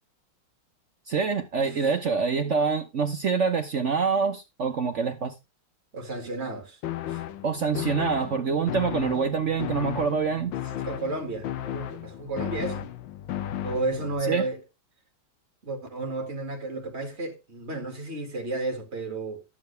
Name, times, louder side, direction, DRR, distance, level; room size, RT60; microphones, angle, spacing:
voice 1, 1.1-5.3 7.4-10.5 14.3-14.5, right 5 dB, 60° right, 0.8 m, -26 dB
voice 2, 5.9-6.8 7.1-7.2 10.8-12.8 13.6-14.6 15.6-19.4, right 2 dB, 30° right, 2.1 m, -32 dB
sound 1, 6.8-14.2, left 11 dB, 70° left, 1.4 m, -34 dB
11.0 x 7.6 x 3.3 m
omnidirectional pair, 2.3 m